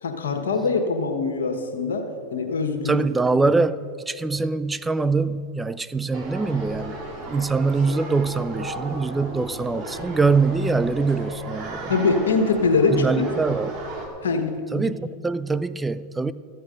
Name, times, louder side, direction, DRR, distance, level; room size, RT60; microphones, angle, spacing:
voice 1, 0.0-3.0 11.9-13.0 14.2-14.9, left 4 dB, 90° left, 5 dB, 1.2 m, -23 dB
voice 2, 2.9-7.0 7.3-11.9 12.9-13.8 14.7-16.3, right 4 dB, 10° right, 16 dB, 0.4 m, -23 dB
sound 1, 6.1-14.1, right 2 dB, 50° right, 2.1 m, -35 dB
14.0 x 8.1 x 5.1 m, 2.3 s
hypercardioid pair, 110°, 0 cm